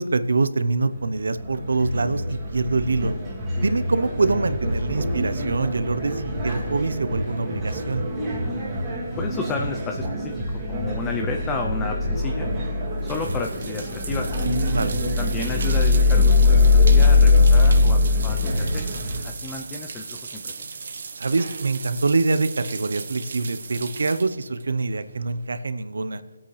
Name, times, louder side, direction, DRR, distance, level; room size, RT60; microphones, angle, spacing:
voice 1, 0.0-3.1 3.6-8.0 14.7-14.9 21.2-26.2, right 3 dB, 80° right, 12 dB, 0.8 m, -24 dB
sound 1, 0.9-19.2, left 3 dB, 10° right, 2.1 m, -22 dB
voice 2, 9.2-10.4 10.7-12.5 13.0-14.4 15.2-20.7, left 4 dB, 10° left, 3 dB, 0.5 m, -32 dB
sound 2, 12.3-25.5, right 5 dB, 55° right, 1.2 m, -37 dB
22.0 x 8.7 x 3.3 m, 1.2 s
hypercardioid pair, 165°, 0 cm